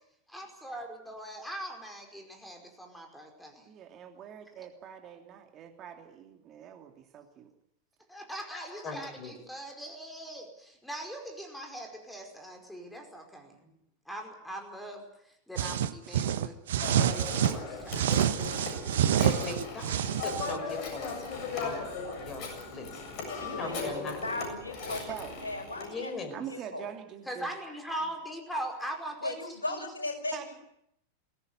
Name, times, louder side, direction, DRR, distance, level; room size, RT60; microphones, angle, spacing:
voice 1, 0.3-3.7 4.6-4.7 8.1-13.6 14.1-16.6 17.1-18.3 27.3-29.8, right 1 dB, 5° left, 3 dB, 5.1 m, -41 dB
voice 2, 3.7-7.5 25.1-25.4 26.3-27.5 30.3-30.4, right 9 dB, 30° right, 4 dB, 2.8 m, -44 dB
voice 3, 8.5-9.3 19.2-21.9 22.2-23.0 23.4-24.2 25.8-26.4, left 3 dB, 25° left, 7 dB, 5.2 m, -40 dB
sound 1, 15.6-17.6 17.9-20.6, right 10 dB, 60° right, 1.2 m, -27 dB
Telephone, 16.8-25.9, left 4 dB, 40° left, 7.4 m, -38 dB
voice 4, 23.3-25.0 25.4-26.1 26.5-26.9 29.2-30.6, left 2 dB, 75° left, 3 dB, 6.0 m, -37 dB
23.0 x 17.5 x 9.5 m, 0.76 s
figure-of-eight pair, 90°, 0 cm